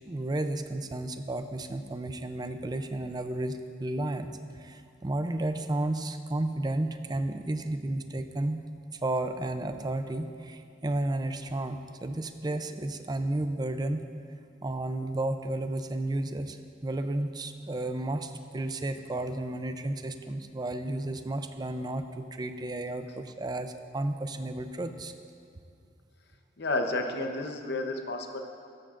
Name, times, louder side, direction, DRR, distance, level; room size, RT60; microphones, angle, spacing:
voice 1, 0.1-4.3 4.5-8.6 8.9-14.0 14.6-25.1, right 1 dB, 25° right, 8 dB, 0.5 m, -32 dB
voice 2, 26.6-28.4, left 2 dB, 65° left, 4 dB, 0.9 m, -31 dB
13.5 x 13.0 x 2.5 m, 2.4 s
head